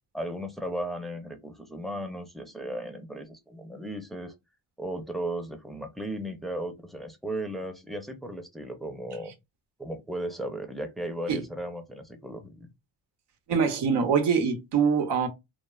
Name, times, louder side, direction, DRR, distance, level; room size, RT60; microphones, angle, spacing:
voice 1, 0.1-4.3 4.8-9.3 9.8-12.7, right 1 dB, ahead, 0.5 m, -36 dB
voice 2, 13.5-15.3, right 6 dB, 80° right, 0.8 m, -24 dB
3.1 x 2.0 x 2.3 m
cardioid pair, 95°, 41 cm